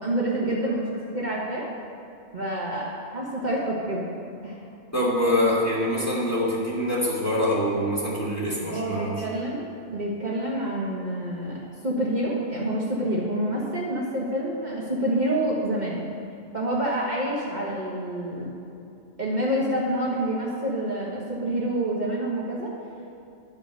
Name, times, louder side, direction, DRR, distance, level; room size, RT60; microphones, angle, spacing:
voice 1, 0.0-1.6 2.3-2.8 3.1-4.0 4.4-4.6 8.7-16.0 16.5-18.5 19.2-22.7, right 1 dB, 35° right, -6 dB, 1.4 m, -27 dB
voice 2, 4.9-9.2, left 1 dB, 10° left, -7 dB, 2.0 m, -25 dB
11.0 x 5.4 x 6.6 m, 2.7 s
omnidirectional pair, 1.3 m